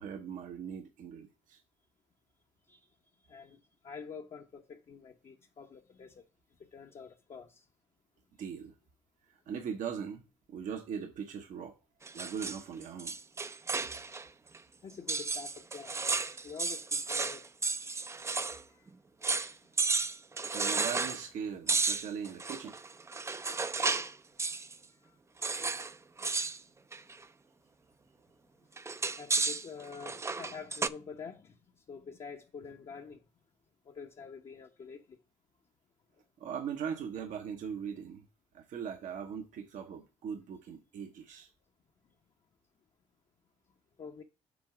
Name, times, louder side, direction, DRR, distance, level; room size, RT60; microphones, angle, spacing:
voice 1, 0.0-1.6 8.4-8.7 9.3-10.2 10.5-11.8 12.1-13.2 20.4-22.8 36.4-38.2 38.5-41.5, right 7 dB, 65° right, 0.9 m, -40 dB
voice 2, 3.3-3.6 3.8-6.2 6.7-7.6 14.8-15.9 16.4-17.4 19.3-19.6 29.2-31.6 31.9-33.2 33.9-35.2 44.0-44.2, left 5 dB, 50° left, 0.9 m, -47 dB
sound 1, 12.0-14.3 14.5-14.6 15.1-18.6 18.9-19.0 19.2-19.5 19.8-21.2 21.7-24.1 24.4-24.8 25.4-25.9 26.2-26.6 26.9-27.2 28.8-30.9, right 4 dB, 20° right, 0.4 m, -33 dB
7.3 x 3.6 x 4.7 m
hypercardioid pair, 55°, 14 cm